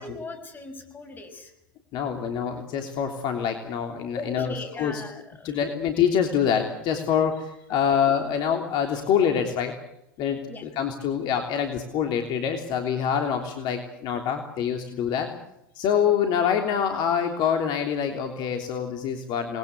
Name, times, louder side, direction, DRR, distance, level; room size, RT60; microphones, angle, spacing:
voice 1, 0.0-1.5 4.1-5.6 7.7-8.0 10.5-10.7, left 3 dB, 15° left, 7 dB, 5.6 m, -39 dB
voice 2, 1.9-5.0 5.4-9.7 10.2-10.4 10.8-15.3 15.7-19.6, left 8 dB, 40° left, 5 dB, 3.2 m, -25 dB
28.0 x 21.0 x 8.2 m, 0.84 s
hypercardioid pair, 100°, 12 cm